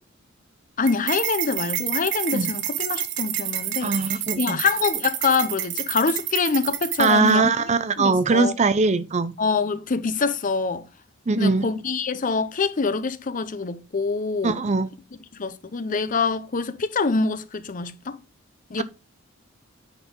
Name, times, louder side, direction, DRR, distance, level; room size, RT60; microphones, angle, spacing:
voice 1, 0.8-4.0 4.4-7.5 8.0-8.5 9.4-10.8 11.4-14.6 15.4-18.2 18.7-18.8, left 4 dB, 40° left, 0.6 m, -25 dB
sound 1, 0.9-7.3, right 12 dB, 60° right, 0.9 m, -29 dB
voice 2, 3.8-4.6 7.0-9.3 11.3-11.6 14.4-14.9 18.8-18.9, right 4 dB, 35° right, 0.5 m, -21 dB
9.5 x 4.4 x 3.7 m
head